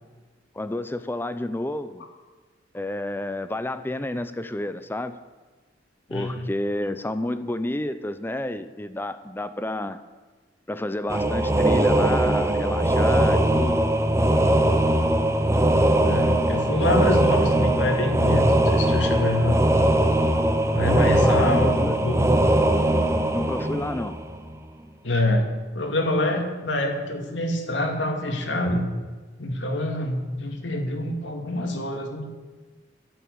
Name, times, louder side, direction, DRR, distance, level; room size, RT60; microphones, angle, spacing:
voice 1, 0.5-2.1 2.7-5.2 6.1-10.0 10.7-13.8 20.8-22.0 23.3-24.2, left 1 dB, 10° left, 11 dB, 0.5 m, -30 dB
voice 2, 6.1-6.5 16.0-19.6 20.7-22.3 25.0-28.9 29.4-32.3, left 1 dB, 80° left, 3 dB, 2.2 m, -26 dB
sound 1, 11.1-24.5, right 1 dB, 15° right, 0.8 m, -21 dB
11.0 x 9.1 x 8.6 m, 1.3 s
head